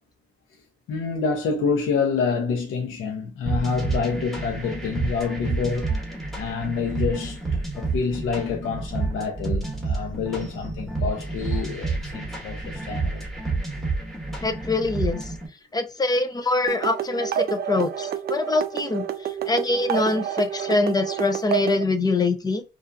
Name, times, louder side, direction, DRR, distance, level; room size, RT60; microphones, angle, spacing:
voice 1, 0.9-5.9 6.3-13.2, left 5 dB, 80° left, 0.7 m, -27 dB
sound 1, 3.5-15.5, right 3 dB, ahead, 1.1 m, -29 dB
voice 2, 14.4-15.3 15.7-22.6, left 2 dB, 20° left, 0.4 m, -24 dB
sound 2, 16.7-21.8, right 9 dB, 55° right, 0.4 m, -29 dB
2.5 x 2.5 x 2.2 m
cardioid pair, 90°, 20 cm